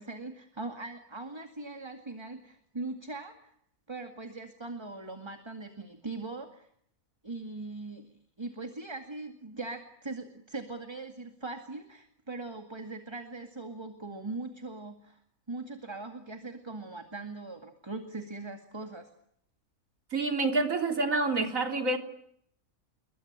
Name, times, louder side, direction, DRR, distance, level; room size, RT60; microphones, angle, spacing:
voice 1, 0.0-3.5 3.9-6.7 7.2-15.2 15.5-19.1, right 3 dB, 20° right, 6 dB, 2.2 m, -40 dB
voice 2, 20.1-22.0, right 3 dB, 70° right, 4 dB, 3.7 m, -27 dB
28.5 x 23.0 x 8.9 m, 0.71 s
omnidirectional pair, 1.4 m